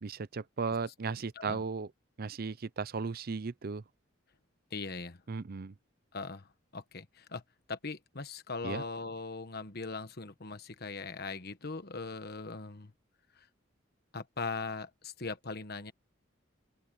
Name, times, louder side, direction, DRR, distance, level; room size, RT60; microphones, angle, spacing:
voice 1, 0.0-1.9 2.2-3.8 5.3-5.7 8.6-8.8, right 4 dB, 50° right, 0.6 m, -36 dB
voice 2, 4.7-5.2 6.1-7.4 7.7-12.9 13.4-13.5 14.1-15.9, left 4 dB, 50° left, 1.3 m, -40 dB
open air
head